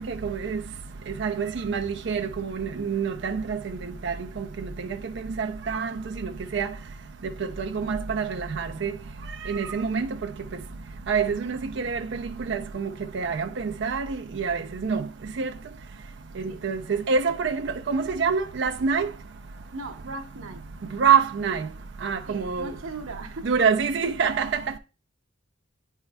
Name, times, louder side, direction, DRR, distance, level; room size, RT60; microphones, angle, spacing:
voice 1, 0.2-0.6 1.2-3.8 4.0-4.7 5.4-5.9 6.2-6.7 7.6-8.9 9.4-10.1 11.1-12.2 12.5-12.9 13.1-15.1 15.4-15.5 16.6-19.1 21.0-21.7 22.0-22.7 23.4-24.6, right 6 dB, 60° right, 0.4 m, -26 dB
voice 2, 19.7-20.6 22.3-23.5, right 2 dB, 85° right, 0.9 m, -38 dB
9.6 x 4.5 x 2.2 m
head